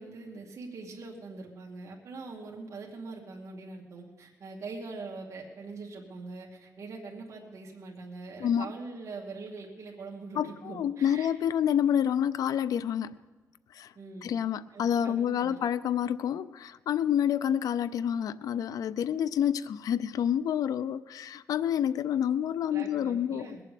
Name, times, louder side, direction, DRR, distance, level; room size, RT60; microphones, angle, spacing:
voice 1, 0.0-11.3 14.0-14.4 14.7-15.6 22.6-23.6, right 3 dB, 55° right, -1 dB, 2.4 m, -43 dB
voice 2, 8.4-8.7 10.4-13.2 13.7-13.9 14.2-23.6, left 9 dB, 75° left, 15 dB, 0.5 m, -28 dB
21.0 x 7.7 x 8.5 m, 1.3 s
cardioid pair, 120°, 6 cm